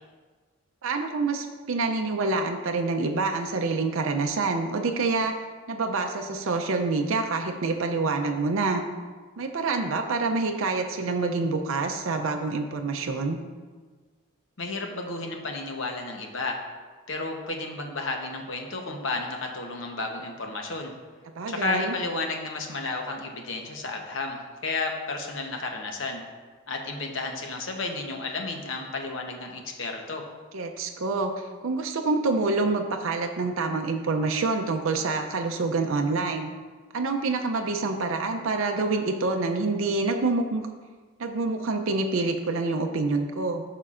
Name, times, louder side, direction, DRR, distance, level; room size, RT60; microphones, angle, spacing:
voice 1, 0.8-5.3 5.7-8.8 9.4-13.4 21.4-21.9 30.5-36.5 36.9-40.7 41.2-43.6, right 3 dB, 75° right, 4 dB, 0.5 m, -27 dB
voice 2, 14.6-16.6 17.1-20.9 21.5-26.2 26.7-30.2, left 3 dB, 65° left, 2 dB, 0.9 m, -32 dB
11.0 x 5.7 x 2.5 m, 1.4 s
head